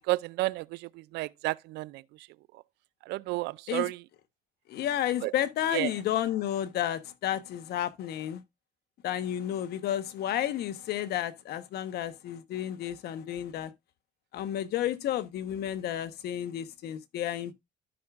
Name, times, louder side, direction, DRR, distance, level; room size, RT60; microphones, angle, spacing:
voice 1, 0.1-2.0 3.1-4.0 5.2-5.3 5.7-5.9, right 20 dB, 85° right, 0.4 m, -31 dB
voice 2, 4.7-8.4 9.0-13.7 14.3-17.5, left 11 dB, 70° left, 1.1 m, -31 dB
13.0 x 6.0 x 2.4 m
cardioid pair, 110°, 17 cm